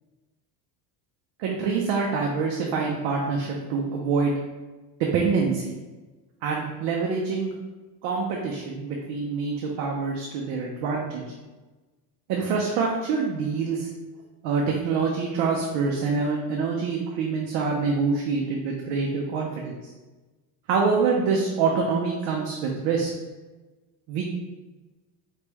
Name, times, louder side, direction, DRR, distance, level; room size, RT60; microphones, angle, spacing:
voice 1, 1.4-4.4 5.0-5.7 6.4-7.5 8.0-11.2 12.3-13.9 14.4-19.9 20.7-23.1 24.1-24.2, right 4 dB, 55° right, -1 dB, 0.7 m, -25 dB
4.2 x 3.2 x 3.4 m, 1.2 s
cardioid pair, 160°, 47 cm